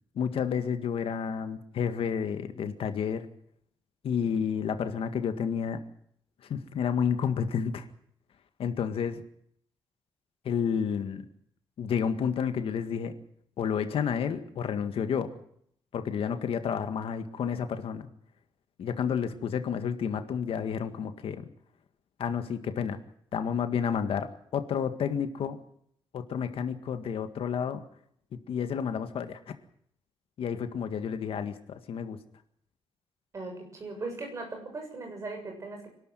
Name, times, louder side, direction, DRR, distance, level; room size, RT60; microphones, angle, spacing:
voice 1, 0.2-3.3 4.0-5.8 6.4-7.8 8.6-9.2 10.5-11.3 11.8-13.1 13.6-15.3 15.9-18.1 18.8-21.5 22.2-23.0 23.3-25.6 26.1-27.8 28.5-29.4 30.4-32.2, left 7 dB, 70° left, 8 dB, 1.9 m, -30 dB
voice 2, 33.3-35.9, right 3 dB, 30° right, 2 dB, 7.1 m, -38 dB
26.0 x 12.5 x 9.3 m, 0.67 s
wide cardioid pair, 175°, 10 cm